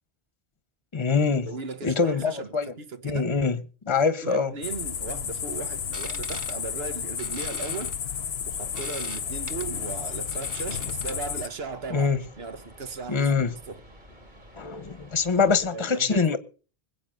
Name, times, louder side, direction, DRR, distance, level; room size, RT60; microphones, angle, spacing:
voice 1, 0.9-1.5 1.8-2.7 3.0-3.6 3.9-4.5 11.9-12.2 13.1-13.5 14.6-16.4, left 5 dB, 30° left, 1.0 m, -24 dB
voice 2, 1.5-3.3 4.0-8.0 8.4-12.1 12.4-13.3 13.7-13.8 15.4-16.3, right 4 dB, 75° right, 1.4 m, -37 dB
sound 1, 4.6-11.5, left 8 dB, 80° left, 1.1 m, -32 dB
sound 2, 5.8-11.4, right 1 dB, 20° right, 1.6 m, -43 dB
sound 3, 8.5-15.7, equal, 45° right, 4.0 m, -51 dB
21.0 x 8.2 x 6.6 m
omnidirectional pair, 1.1 m